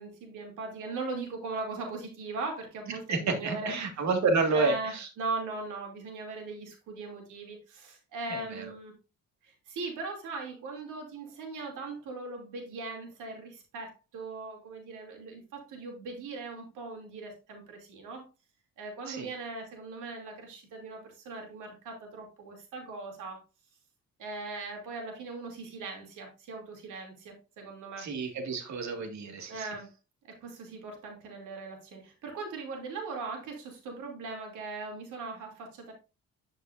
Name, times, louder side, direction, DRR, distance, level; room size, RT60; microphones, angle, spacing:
voice 1, 0.0-4.0 4.5-8.9 9.4-18.2 18.8-23.4 24.2-28.1 29.5-29.9 30.3-35.9, right 3 dB, 85° right, 1 dB, 2.9 m, -39 dB
voice 2, 2.9-5.1 8.3-8.7 19.1-19.3 28.0-29.7, right 3 dB, 65° right, 5 dB, 2.1 m, -30 dB
11.5 x 5.3 x 2.6 m, 0.30 s
cardioid pair, 90°, 30 cm